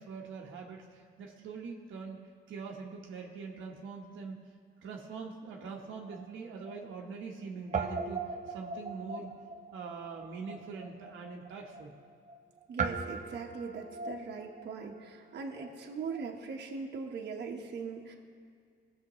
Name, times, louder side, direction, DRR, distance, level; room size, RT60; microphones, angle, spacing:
voice 1, 0.0-2.2 2.5-4.4 4.8-8.2 8.5-9.3 9.7-11.9, right 5 dB, 80° right, 0 dB, 1.2 m, -43 dB
Guitar, 5.6-7.4 7.7-16.4, right 4 dB, 40° right, 0.7 m, -41 dB
voice 2, 12.7-18.1, right 5 dB, 60° right, 1 dB, 1.2 m, -40 dB
18.0 x 6.9 x 3.1 m, 2.1 s
cardioid pair, 90°, 20 cm